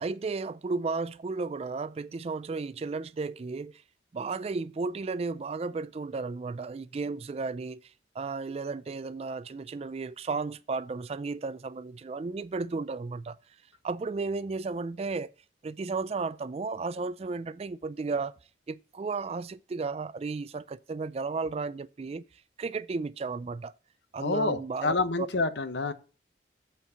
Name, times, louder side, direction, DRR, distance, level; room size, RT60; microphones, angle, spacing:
voice 1, 0.0-3.8 4.1-13.4 13.8-15.3 15.6-18.3 18.7-22.2 22.6-23.7 24.1-25.3, right 4 dB, 35° right, 0.3 m, -34 dB
voice 2, 24.2-25.9, left 3 dB, 70° left, 0.9 m, -28 dB
8.2 x 4.5 x 6.8 m
head